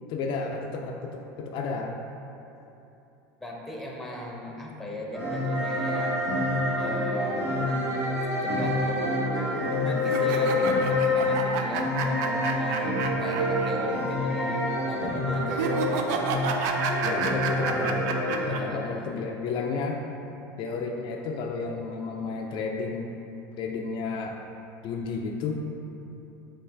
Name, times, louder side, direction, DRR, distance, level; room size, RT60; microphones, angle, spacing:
voice 1, 0.1-2.0 17.0-20.1 20.6-23.1 23.6-24.4 24.8-25.6, left 4 dB, 50° left, 1 dB, 0.3 m, -32 dB
voice 2, 3.4-6.2 6.8-7.7 8.4-16.4 18.5-19.2, left 1 dB, ahead, -2 dB, 0.7 m, -38 dB
sound 1, 5.1-18.5, left 1 dB, 85° right, 1.1 m, -27 dB
sound 2, 10.0-13.7 14.0-14.1 15.5-18.6, right 5 dB, 70° right, 0.4 m, -30 dB
5.5 x 2.4 x 3.4 m, 2.9 s
supercardioid pair, 100°, 10 cm